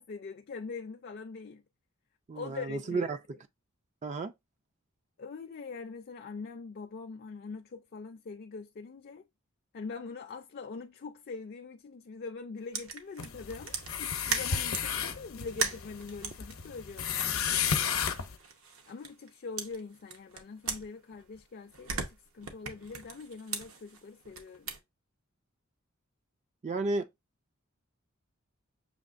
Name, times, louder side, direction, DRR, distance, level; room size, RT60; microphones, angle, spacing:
voice 1, 0.0-1.6 2.3-3.1 5.2-9.2 9.7-17.5 18.9-24.7, left 4 dB, 45° left, 0.4 m, -43 dB
voice 2, 2.3-3.2 4.0-4.3 26.6-27.1, right 3 dB, 35° right, 0.3 m, -32 dB
sound 1, 12.7-14.9 15.5-19.3 19.6-21.4 21.7-24.8, right 5 dB, 70° right, 0.8 m, -39 dB
sound 2, 13.2-18.4, left 7 dB, 75° left, 0.7 m, -33 dB
6.3 x 2.9 x 2.4 m
head